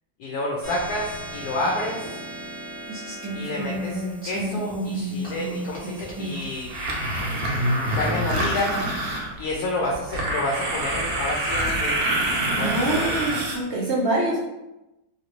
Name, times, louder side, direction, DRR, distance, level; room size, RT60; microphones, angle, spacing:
voice 1, 0.2-2.2 3.3-6.7 7.9-8.8 9.4-12.1 12.6-13.4, left 1 dB, 70° left, -2 dB, 1.0 m, -29 dB
sound 1, 0.6-11.5, right 1 dB, 40° left, 1.1 m, -41 dB
sound 2, 2.0-2.1 2.8-6.4 7.2-7.3 8.0-8.1 8.7-8.8 9.5-9.6 10.2-10.3 11.0-11.8 12.3-12.6, right 1 dB, 20° right, 0.7 m, -32 dB
sound 3, 6.3-9.5 9.9-13.6, right 1 dB, 85° right, 1.4 m, -26 dB
voice 2, 12.6-14.5, right 2 dB, 70° right, -5 dB, 0.6 m, -25 dB
3.2 x 2.6 x 2.9 m, 0.96 s
omnidirectional pair, 2.0 m